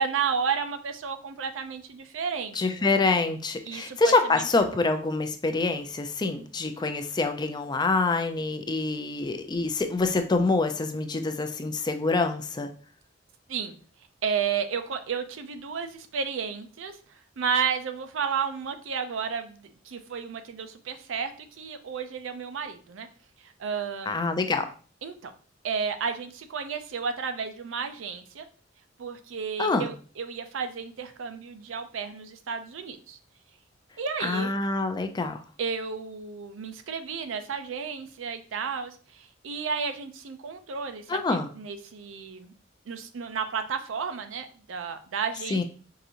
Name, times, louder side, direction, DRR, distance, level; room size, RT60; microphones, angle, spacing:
voice 1, 0.0-2.9 3.6-4.8 13.5-13.8 14.2-17.0 17.4-21.3 21.6-23.1 23.6-24.3 25.0-25.3 25.6-28.5 29.0-33.2 34.0-34.5 35.6-42.5 42.9-45.6, right 6 dB, 90° right, 8 dB, 0.5 m, -32 dB
voice 2, 2.5-12.7 24.1-24.7 29.6-29.9 34.2-35.4 41.1-41.5 45.5-45.6, left 3 dB, 20° left, 7 dB, 0.4 m, -26 dB
4.8 x 2.6 x 2.8 m, 0.40 s
head